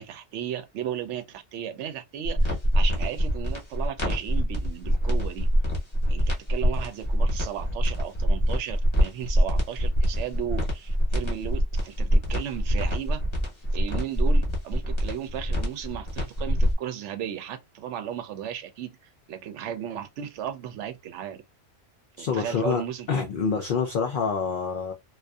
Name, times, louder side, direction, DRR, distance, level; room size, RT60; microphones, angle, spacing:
voice 1, 0.0-5.5 6.1-13.2 13.7-18.9 19.3-21.4 22.2-23.3, right 9 dB, 75° right, 0.9 m, -35 dB
sound 1, 2.2-16.7, equal, 25° left, 0.8 m, -24 dB
voice 2, 22.2-22.8 23.1-24.9, left 6 dB, 60° left, 0.5 m, -26 dB
2.5 x 2.3 x 2.2 m
omnidirectional pair, 1.3 m